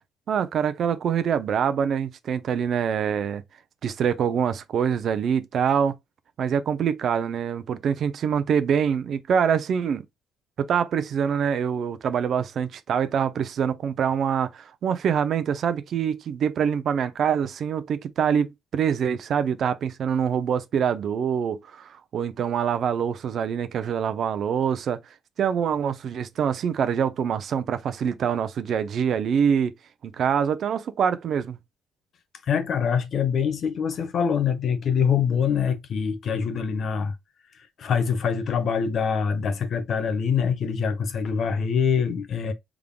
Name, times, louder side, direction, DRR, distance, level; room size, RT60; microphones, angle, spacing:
voice 1, 0.3-3.4 3.8-5.9 6.4-10.0 10.6-25.0 25.4-29.7 30.0-31.6, right 7 dB, 50° right, 0.6 m, -25 dB
voice 2, 32.5-37.1 37.8-42.5, left 6 dB, 50° left, 0.8 m, -24 dB
3.6 x 3.6 x 2.2 m
cardioid pair, 130°, 0 cm